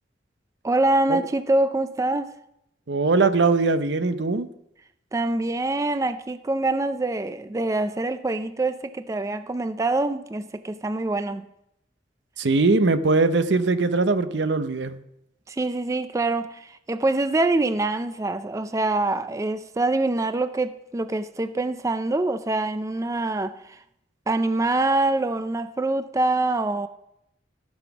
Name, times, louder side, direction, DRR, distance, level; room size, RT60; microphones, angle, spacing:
voice 1, 0.6-2.3 5.1-11.5 15.5-23.8 24.3-26.9, right 2 dB, 15° right, 11 dB, 0.4 m, -25 dB
voice 2, 2.9-4.5 12.4-14.9, right 3 dB, 75° right, 12 dB, 0.7 m, -21 dB
14.0 x 5.9 x 6.0 m, 0.80 s
head